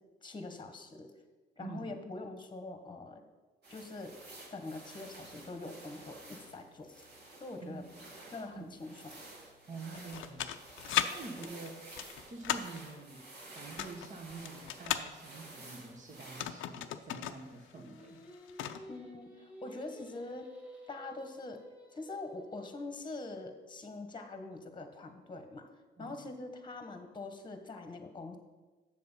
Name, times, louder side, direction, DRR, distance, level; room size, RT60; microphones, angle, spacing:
voice 1, 0.2-1.1 1.6-3.2 3.7-4.2 4.5-7.0 7.4-7.9 8.3-9.2 11.4-11.5 18.9-20.5 20.9-21.6 21.9-25.7 26.0-28.4, left 2 dB, 25° left, 7 dB, 1.2 m, -44 dB
voice 2, 1.6-1.9 7.6-7.8 8.5-8.7 9.7-11.8 12.3-13.3 13.5-18.2 26.0-26.2, right 3 dB, 40° right, 1 dB, 1.2 m, -47 dB
sound 1, 3.6-16.4, right 2 dB, 55° right, 2.2 m, -52 dB
sound 2, 9.9-11.1 11.4-12.8 13.6-15.1 16.2-17.4 17.7-17.8 18.2-18.8, left 12 dB, 85° left, 0.5 m, -35 dB
Singing, 17.7-22.9, equal, 5° right, 2.1 m, -53 dB
7.7 x 6.7 x 5.5 m, 1.3 s
cardioid pair, 90°, 20 cm